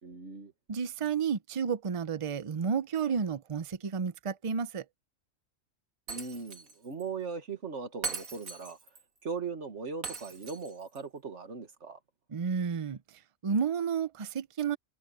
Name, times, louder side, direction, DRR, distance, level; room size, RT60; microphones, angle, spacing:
voice 1, 0.0-0.5 6.1-8.8 9.2-12.0, right 5 dB, 60° right, 2.0 m, -39 dB
voice 2, 0.7-4.8 12.3-13.0 13.4-14.8, right 6 dB, 35° right, 0.5 m, -31 dB
Shatter, 6.1-6.7 7.0-7.1 8.0-9.0 10.0-11.0, right 4 dB, 80° right, 2.3 m, -40 dB
omnidirectional pair, 1.4 m